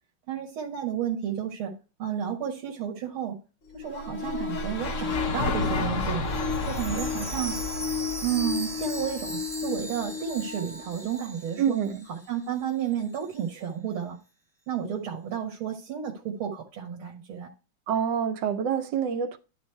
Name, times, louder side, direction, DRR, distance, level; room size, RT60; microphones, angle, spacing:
voice 1, 0.3-1.7 2.0-3.4 3.7-6.3 6.7-7.6 8.2-11.8 12.1-14.2 14.7-17.5, right 9 dB, 85° right, 2.2 m, -32 dB
sound 1, 3.7-11.3 12.0-12.1 13.1-13.2, left 7 dB, 75° left, 2.8 m, -35 dB
sound 2, 3.9-10.0, left 2 dB, 50° left, 1.0 m, -32 dB
Chime, 6.3-12.2 12.5-12.6 13.2-13.3, right 2 dB, 10° right, 1.3 m, -39 dB
voice 2, 11.6-12.1 17.9-19.4, right 8 dB, 70° right, 1.3 m, -26 dB
11.5 x 3.9 x 4.5 m
omnidirectional pair, 2.3 m